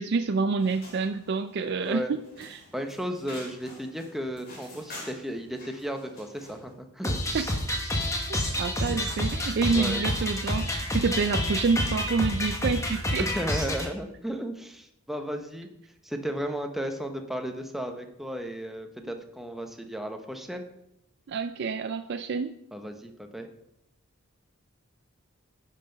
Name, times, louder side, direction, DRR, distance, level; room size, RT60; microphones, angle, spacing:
voice 1, 0.0-2.6 7.3-7.5 8.3-13.3 21.3-22.5, right 4 dB, 50° right, 9 dB, 0.4 m, -28 dB
sound 1, 0.6-6.7, left 1 dB, 45° left, 2.8 m, -48 dB
voice 2, 1.8-2.2 2.7-7.2 8.9-9.0 9.7-10.0 13.2-15.7 16.0-20.7 22.7-23.5, equal, ahead, 5 dB, 0.8 m, -34 dB
sound 2, 7.0-13.9, left 1 dB, 15° left, 1.2 m, -29 dB
9.8 x 5.8 x 5.2 m, 0.79 s
head